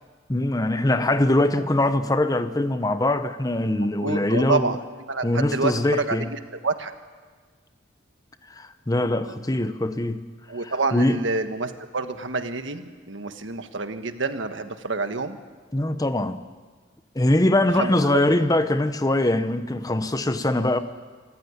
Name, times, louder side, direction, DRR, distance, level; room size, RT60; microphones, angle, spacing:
voice 1, 0.3-4.7 5.2-6.3 8.5-10.2 10.6-11.2 15.7-16.4 17.1-20.8, left 1 dB, 20° left, 0.8 m, -22 dB
voice 2, 3.8-4.8 5.1-6.9 9.3-9.4 10.5-15.4 17.8-18.2, right 3 dB, 70° right, 1.5 m, -28 dB
26.0 x 14.5 x 9.8 m
head